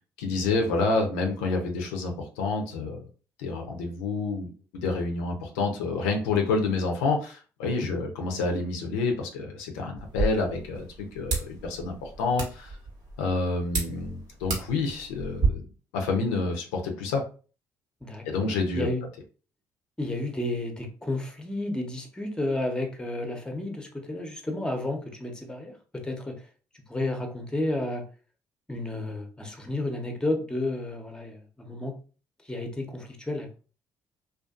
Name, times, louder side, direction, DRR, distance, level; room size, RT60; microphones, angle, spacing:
voice 1, 0.2-3.0 3.4-12.8 13.2-15.7 15.9-17.3 18.2-18.9, left 3 dB, 85° left, 3 dB, 0.4 m, -28 dB
sound 1, 10.0-15.5, right 4 dB, 65° right, 1.0 m, -32 dB
voice 2, 20.0-26.4 26.9-28.0 28.7-32.0 32.5-33.5, left 1 dB, 10° left, 4 dB, 0.7 m, -31 dB
2.5 x 2.3 x 2.3 m, 0.37 s
hypercardioid pair, 55°, 8 cm